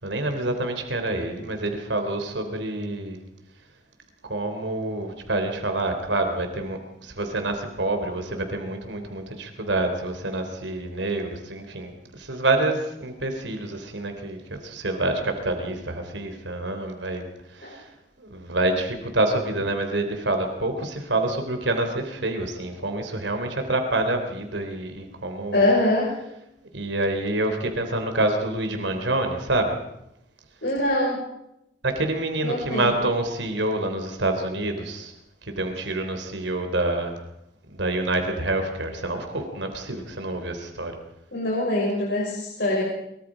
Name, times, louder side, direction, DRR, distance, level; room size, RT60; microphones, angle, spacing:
voice 1, 0.0-3.2 4.3-17.2 17.5-17.9 18.2-25.6 26.7-29.8 31.8-35.1 35.5-37.2 37.7-40.9, right 2 dB, 80° right, 6 dB, 3.5 m, -27 dB
voice 2, 25.5-26.2 30.6-31.2 32.4-32.9 41.3-42.8, left 1 dB, 70° left, -4 dB, 6.1 m, -23 dB
23.5 x 23.5 x 5.0 m, 0.84 s
head